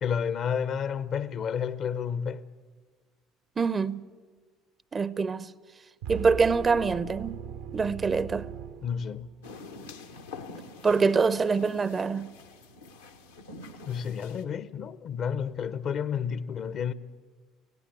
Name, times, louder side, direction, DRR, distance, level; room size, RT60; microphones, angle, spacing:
voice 1, 0.0-2.4 8.8-9.3 13.9-16.9, left 7 dB, 50° left, 0.7 m, -31 dB
voice 2, 3.6-4.0 4.9-5.5 6.1-7.4 7.7-8.5 10.8-12.3, right 4 dB, 30° right, 0.6 m, -25 dB
sound 1, 6.0-9.5, right 8 dB, 70° right, 0.8 m, -39 dB
sound 2, 9.4-14.4, left 3 dB, 85° left, 1.3 m, -45 dB
17.5 x 17.0 x 8.6 m
figure-of-eight pair, 60°, 0 cm